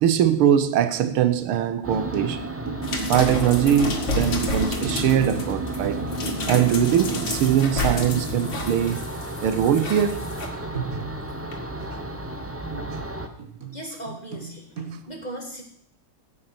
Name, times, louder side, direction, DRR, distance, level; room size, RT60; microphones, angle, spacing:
voice 1, 0.0-2.5 3.1-6.0 6.5-9.0 9.4-10.2, right 9 dB, 85° right, 1.8 m, -21 dB
sound 1, 1.0-1.5 1.8-1.9 2.1-6.2 6.5-6.9 7.1-7.4 7.7-7.8 8.1-9.0 9.7-9.8 10.7-11.6 12.1-15.0, right 6 dB, 45° right, 2.0 m, -37 dB
sound 2, 1.8-13.3, right 2 dB, 15° right, 0.4 m, -33 dB
sound 3, 2.8-10.5 11.5-11.6, left 2 dB, 60° left, 2.8 m, -30 dB
voice 2, 13.7-15.6, right 1 dB, 20° left, 1.8 m, -38 dB
16.5 x 8.5 x 6.0 m
omnidirectional pair, 2.3 m